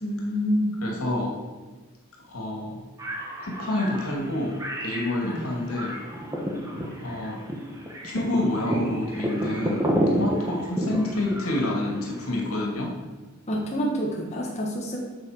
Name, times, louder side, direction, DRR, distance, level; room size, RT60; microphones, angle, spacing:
voice 1, 0.0-0.8 5.2-5.5 13.5-15.0, equal, 30° left, -3 dB, 1.4 m, -27 dB
voice 2, 0.8-1.4 2.3-2.8 3.4-4.6 4.8-6.0 7.0-7.4 8.0-12.9, left 1 dB, 85° left, -1 dB, 2.4 m, -28 dB
sound 1, 3.0-12.4, equal, 15° right, 1.2 m, -30 dB
8.6 x 6.0 x 6.6 m, 1.3 s
head